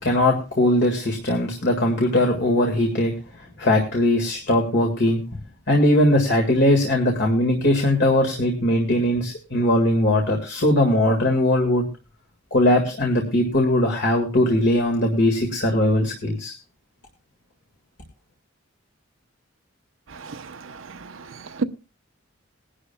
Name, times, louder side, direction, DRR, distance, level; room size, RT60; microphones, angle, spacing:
voice 1, 0.0-3.1 3.6-5.2 5.7-11.8 12.5-16.5, left 1 dB, 55° left, 1.9 m, -20 dB
voice 2, 20.1-21.0 21.5-21.6, right 4 dB, 70° right, 0.7 m, -31 dB
20.5 x 11.0 x 2.3 m
head